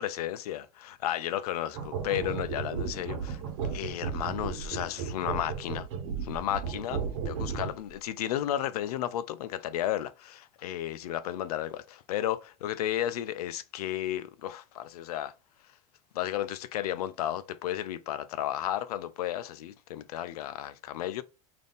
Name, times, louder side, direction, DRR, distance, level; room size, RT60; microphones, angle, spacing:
voice 1, 0.0-5.9 6.2-15.3 16.1-21.2, left 12 dB, 85° left, 0.5 m, -33 dB
sound 1, 1.7-7.9, right 6 dB, 60° right, 1.1 m, -34 dB
3.9 x 2.7 x 3.5 m
supercardioid pair, 145°, 19 cm